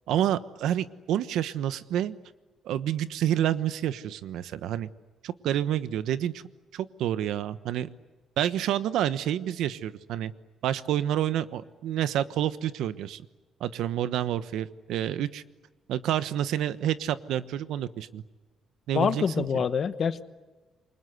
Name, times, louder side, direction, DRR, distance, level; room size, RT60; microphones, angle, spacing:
voice 1, 0.1-2.2 2.6-4.9 5.2-6.4 6.7-7.9 8.4-10.3 10.6-13.2 13.6-15.4 15.9-18.2 18.9-19.5, right 11 dB, 85° right, 13 dB, 1.1 m, -28 dB
voice 2, 18.9-20.2, left 7 dB, 35° left, 12 dB, 1.1 m, -26 dB
28.5 x 25.0 x 8.2 m, 1.3 s
cardioid pair, 175°, 0 cm